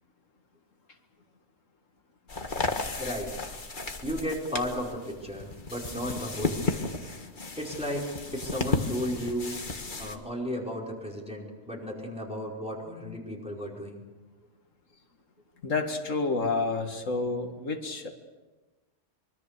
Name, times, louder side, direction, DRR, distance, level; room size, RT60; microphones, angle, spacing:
sound 1, 2.3-10.2, left 3 dB, 40° left, 1.8 m, -34 dB
voice 1, 3.0-3.4 4.0-6.9 7.5-9.6 10.0-14.0, equal, 5° right, -2 dB, 5.0 m, -34 dB
voice 2, 15.6-18.1, left 3 dB, 85° left, 4 dB, 2.3 m, -29 dB
24.5 x 23.5 x 6.8 m, 1.2 s
omnidirectional pair, 1.3 m